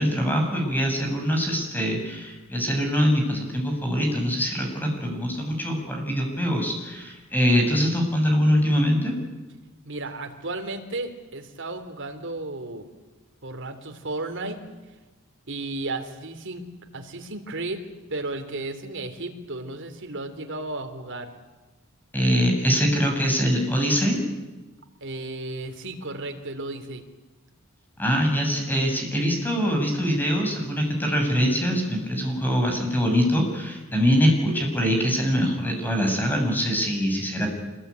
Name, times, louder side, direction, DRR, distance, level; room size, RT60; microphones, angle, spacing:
voice 1, 0.0-9.1 22.1-24.2 28.0-37.5, equal, 10° left, 3 dB, 6.8 m, -23 dB
voice 2, 9.9-12.9 13.4-14.6 15.5-16.6 16.9-17.8 18.1-21.3 25.0-27.0, right 2 dB, 60° right, 5 dB, 3.5 m, -34 dB
26.5 x 21.5 x 9.6 m, 1.2 s
head